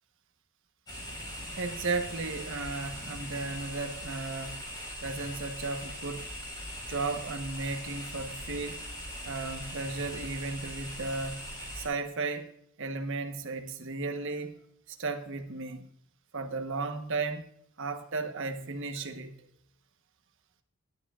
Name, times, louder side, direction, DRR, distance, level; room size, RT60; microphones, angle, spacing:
sound 1, 0.9-11.9, equal, 20° left, 4.5 m, -41 dB
voice 1, 1.6-4.8 5.0-6.3 6.9-8.9 9.2-12.5 12.8-14.6 14.9-15.9 16.3-17.4 17.8-19.4, right 3 dB, 60° right, 1.1 m, -35 dB
13.0 x 11.5 x 2.4 m
head